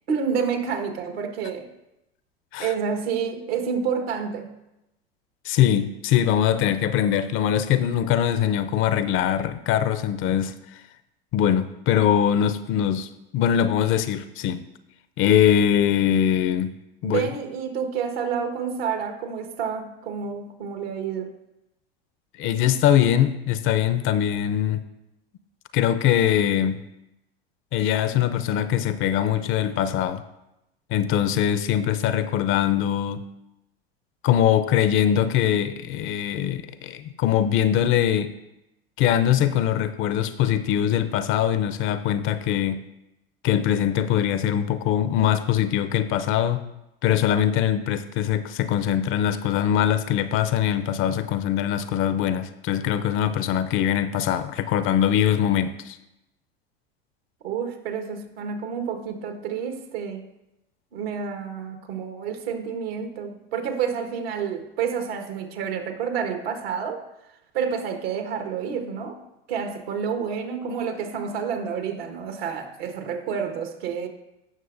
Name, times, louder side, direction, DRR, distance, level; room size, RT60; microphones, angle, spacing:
voice 1, 0.1-1.7 2.6-4.5 17.0-21.3 57.4-60.2 60.9-67.0 67.5-69.2 69.5-74.1, right 7 dB, 70° right, 5 dB, 1.5 m, -29 dB
voice 2, 5.4-10.6 11.3-14.6 15.2-17.2 22.4-24.8 25.7-26.9 27.7-30.2 30.9-33.3 34.2-38.3 39.0-42.8 43.4-46.6 47.0-56.0, left 10 dB, 40° left, 12 dB, 0.6 m, -22 dB
16.5 x 6.1 x 2.6 m, 0.90 s
hypercardioid pair, 90°, 31 cm